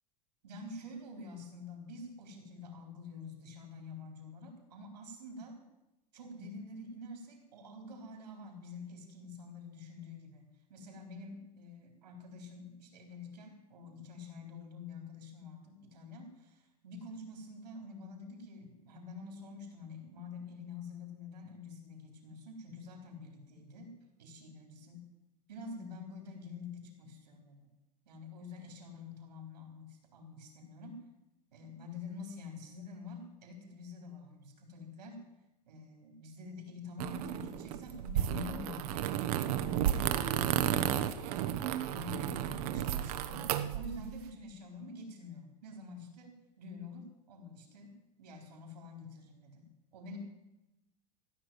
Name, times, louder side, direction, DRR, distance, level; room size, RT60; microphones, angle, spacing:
voice 1, 0.4-5.6 6.1-23.9 24.2-25.0 25.5-27.7 28.1-31.0 31.5-35.2 35.7-39.1 39.5-40.2 40.6-47.9 48.2-50.2, left 3 dB, 85° right, 3 dB, 4.2 m, -47 dB
sound 1, 37.0-44.2, right 10 dB, 65° right, 1.1 m, -33 dB
15.5 x 6.6 x 9.3 m, 0.93 s
hypercardioid pair, 105°, 20 cm